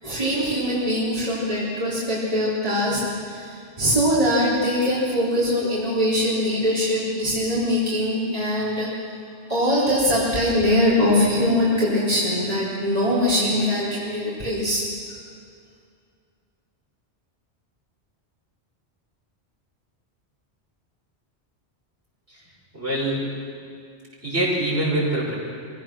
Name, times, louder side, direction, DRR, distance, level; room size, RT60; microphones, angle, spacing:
voice 1, 0.0-8.9 9.5-14.8, left 1 dB, 35° right, -8 dB, 3.8 m, -22 dB
voice 2, 22.7-23.3 24.2-25.3, right 1 dB, 60° right, -5 dB, 5.9 m, -24 dB
25.5 x 16.5 x 6.2 m, 2.3 s
omnidirectional pair, 1.1 m